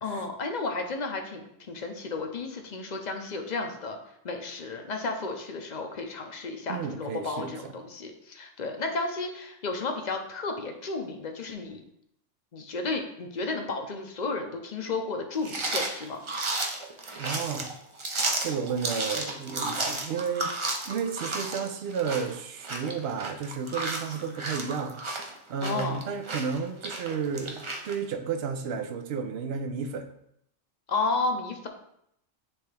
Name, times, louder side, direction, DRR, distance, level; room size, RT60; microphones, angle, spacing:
voice 1, 0.0-4.0 4.2-11.8 12.5-16.2 25.6-26.1 30.9-31.7, left 3 dB, 45° left, 4 dB, 0.7 m, -32 dB
voice 2, 6.7-7.7 17.2-17.7 18.3-20.6 20.9-25.2 25.5-30.1, right 6 dB, 65° right, 7 dB, 0.8 m, -32 dB
sound 1, 15.4-28.0, right 2 dB, 35° right, 0.5 m, -33 dB
8.8 x 3.4 x 3.3 m, 0.75 s
omnidirectional pair, 1.3 m